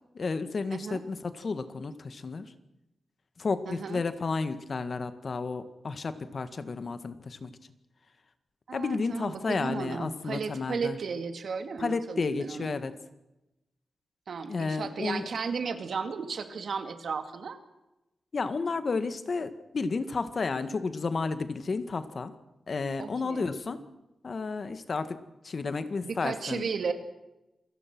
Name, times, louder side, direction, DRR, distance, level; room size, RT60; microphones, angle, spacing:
voice 1, 0.1-2.5 3.4-7.5 8.7-11.0 11.8-13.0 14.5-15.3 18.3-22.3 22.7-23.8 24.2-26.9, left 4 dB, 55° left, 11 dB, 1.7 m, -32 dB
voice 2, 0.7-1.0 3.7-4.0 8.7-12.7 14.3-17.6 23.0-23.5 26.0-26.9, right 5 dB, 75° right, 8 dB, 2.3 m, -34 dB
27.5 x 18.0 x 6.1 m, 0.95 s
wide cardioid pair, 95°, 0 cm